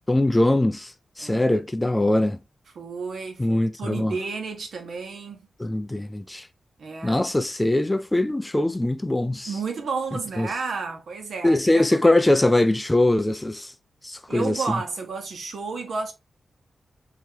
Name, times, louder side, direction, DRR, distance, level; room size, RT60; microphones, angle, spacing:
voice 1, 0.1-2.4 3.4-4.1 5.6-6.5 7.0-9.5 10.4-10.5 11.4-13.7 14.0-14.6, left 1 dB, 15° left, 0.4 m, -22 dB
voice 2, 1.2-1.6 2.7-5.5 6.8-7.2 9.5-12.1 14.3-16.1, right 4 dB, 70° right, 1.2 m, -32 dB
4.8 x 2.9 x 2.8 m
wide cardioid pair, 120°, 0 cm